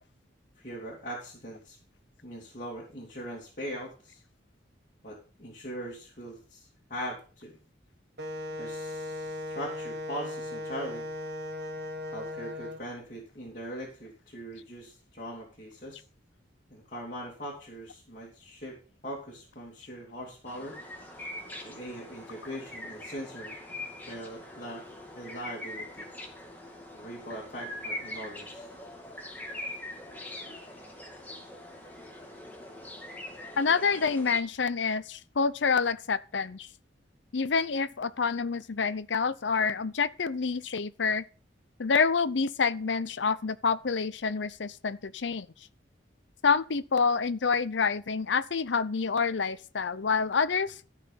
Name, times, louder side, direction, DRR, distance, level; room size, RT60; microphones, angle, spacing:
voice 1, 0.6-1.8 2.2-4.2 5.0-7.6 8.6-11.1 12.1-16.0 16.7-18.8 19.0-20.8 21.6-23.6 24.1-24.8 25.1-26.1 26.9-28.7, equal, 45° left, 2.8 m, -41 dB
Wind instrument woodwind instrument, 8.2-12.8, left 2 dB, 60° right, 1.1 m, -37 dB
sound 1, 20.5-34.4, left 1 dB, 10° left, 2.3 m, -42 dB
voice 2, 33.6-36.7 37.3-41.2 41.8-45.5 46.4-50.8, left 5 dB, 75° left, 0.7 m, -27 dB
13.5 x 5.7 x 5.8 m
head